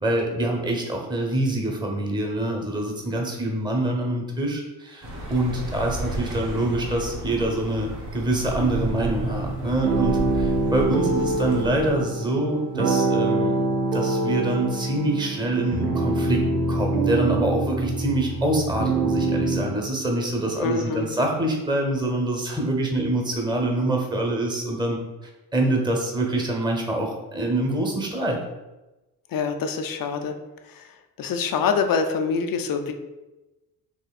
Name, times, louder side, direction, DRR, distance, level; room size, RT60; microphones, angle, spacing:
voice 1, 0.0-13.5 13.8-16.4 16.7-25.0 25.5-28.4, right 1 dB, 10° right, 1 dB, 0.9 m, -25 dB
Accelerating revving vroom, 5.0-11.9, right 2 dB, 45° right, 1.4 m, -33 dB
sound 1, 8.6-19.6, right 3 dB, 85° right, 0.7 m, -25 dB
voice 2, 20.6-21.1 29.3-30.3 30.7-32.9, left 5 dB, 50° left, 6 dB, 0.5 m, -25 dB
4.3 x 3.0 x 2.4 m, 1.0 s
hypercardioid pair, 50°, 46 cm